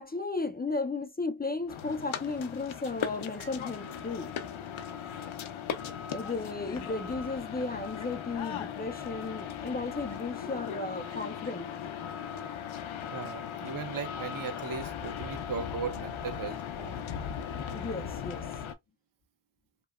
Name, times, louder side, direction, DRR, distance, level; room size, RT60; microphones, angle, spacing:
voice 1, 0.0-4.3 6.1-11.7 17.7-18.5, left 3 dB, 25° left, 0.3 m, -34 dB
sound 1, 1.7-18.7, left 8 dB, 80° left, 0.5 m, -38 dB
voice 2, 13.1-17.0, right 6 dB, 45° right, 0.5 m, -38 dB
2.9 x 2.1 x 2.2 m
wide cardioid pair, 65°, 47 cm